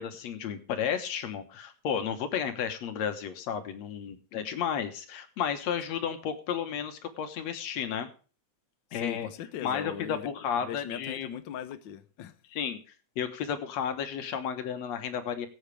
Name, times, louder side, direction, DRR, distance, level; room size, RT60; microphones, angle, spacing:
voice 1, 0.0-8.1 8.9-9.3 9.6-11.3 12.5-12.8 13.2-15.5, left 8 dB, 65° left, 2.4 m, -32 dB
voice 2, 8.9-10.3 10.5-12.3, left 10 dB, 85° left, 1.0 m, -39 dB
22.0 x 8.1 x 3.4 m
omnidirectional pair, 3.3 m